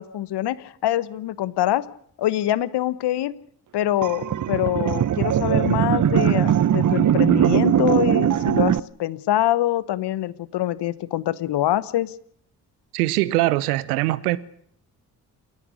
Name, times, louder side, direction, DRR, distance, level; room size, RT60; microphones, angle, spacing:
voice 1, 0.0-1.9 2.2-3.3 3.7-12.1, left 13 dB, 65° left, 1.2 m, -24 dB
sound 1, 4.0-8.8, right 10 dB, 45° right, 0.9 m, -20 dB
voice 2, 12.9-14.4, right 17 dB, 85° right, 0.9 m, -22 dB
28.5 x 10.5 x 9.9 m
hypercardioid pair, 40°, 44 cm